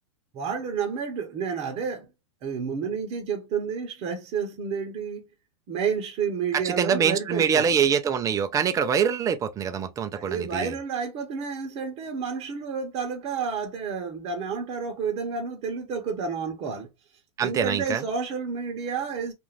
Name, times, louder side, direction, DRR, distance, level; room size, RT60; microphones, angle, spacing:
voice 1, 0.3-2.1 2.4-5.3 5.7-7.7 10.1-16.9 17.4-19.3, right 6 dB, 40° right, 0.8 m, -30 dB
voice 2, 6.5-10.7 17.4-18.0, right 7 dB, 20° right, 0.4 m, -24 dB
2.5 x 2.4 x 3.0 m
hypercardioid pair, 115°, 15 cm